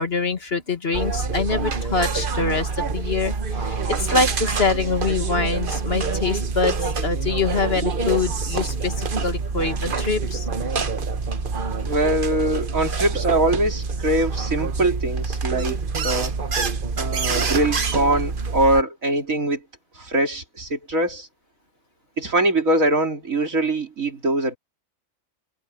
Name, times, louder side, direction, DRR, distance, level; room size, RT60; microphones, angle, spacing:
voice 1, 0.0-10.5, left 4 dB, 50° left, 2.2 m, -25 dB
sound 1, 0.9-18.8, right 4 dB, 45° right, 1.3 m, -26 dB
voice 2, 11.8-16.3 17.0-19.6 20.0-21.3 22.2-24.6, right 1 dB, 80° right, 3.8 m, -22 dB
omnidirectional pair, 1.4 m